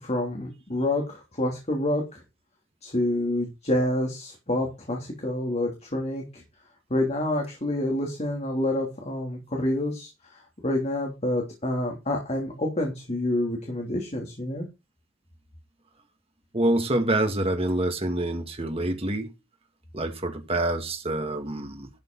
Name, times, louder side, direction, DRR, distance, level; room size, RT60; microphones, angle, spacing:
voice 1, 0.0-2.2 2.8-6.4 6.9-14.6, left 1 dB, 35° left, 3.1 m, -28 dB
voice 2, 16.5-19.3 19.9-21.9, right 1 dB, 30° right, 1.9 m, -26 dB
12.5 x 6.8 x 4.7 m
head